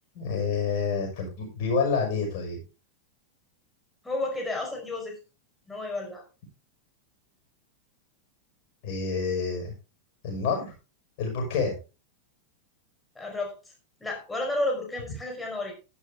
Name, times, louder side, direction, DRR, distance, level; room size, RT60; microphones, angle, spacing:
voice 1, 0.1-2.6 8.8-9.7 10.2-10.7 11.2-11.8, left 5 dB, 45° left, 1 dB, 5.5 m, -28 dB
voice 2, 4.0-5.2 5.7-6.2 13.2-13.5 14.0-15.7, left 2 dB, 10° left, 1 dB, 5.2 m, -31 dB
11.5 x 11.0 x 3.6 m, 0.31 s
figure-of-eight pair, 90°, 0 cm